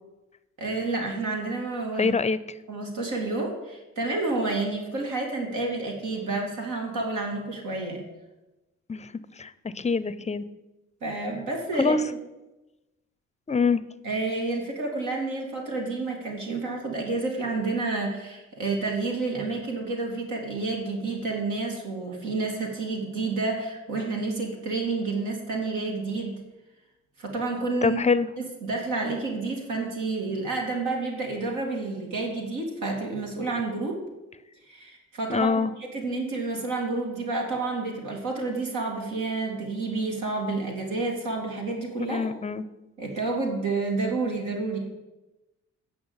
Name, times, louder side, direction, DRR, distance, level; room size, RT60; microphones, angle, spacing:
voice 1, 0.6-2.1 2.7-8.0 11.0-12.0 14.0-26.4 27.2-28.0 28.4-34.0 34.7-35.5 35.8-42.2 43.0-44.8, right 3 dB, 80° right, 0 dB, 2.6 m, -29 dB
voice 2, 2.0-2.4 8.9-10.4 11.8-12.0 13.5-13.8 27.8-28.3 35.3-35.7 42.0-42.6, left 4 dB, 25° left, 15 dB, 0.5 m, -25 dB
9.6 x 6.3 x 7.9 m, 1.0 s
cardioid pair, 90°, 30 cm